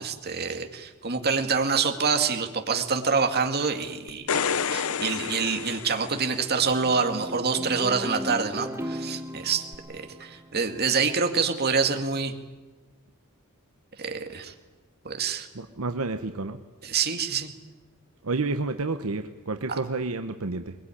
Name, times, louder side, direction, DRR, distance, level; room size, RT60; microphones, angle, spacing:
voice 1, 0.0-4.3 4.7-9.7 9.9-12.3 14.0-14.5 15.0-15.5 16.8-17.5, right 5 dB, 45° right, 6 dB, 2.2 m, -26 dB
sound 1, 4.1-6.6 9.7-9.8, left 6 dB, 70° left, 0.8 m, -29 dB
sound 2, 5.5-10.9, equal, 10° right, 1.2 m, -37 dB
voice 2, 15.5-16.6 18.2-20.7, right 3 dB, 70° right, 8 dB, 1.0 m, -30 dB
22.0 x 22.0 x 9.9 m, 1.3 s
head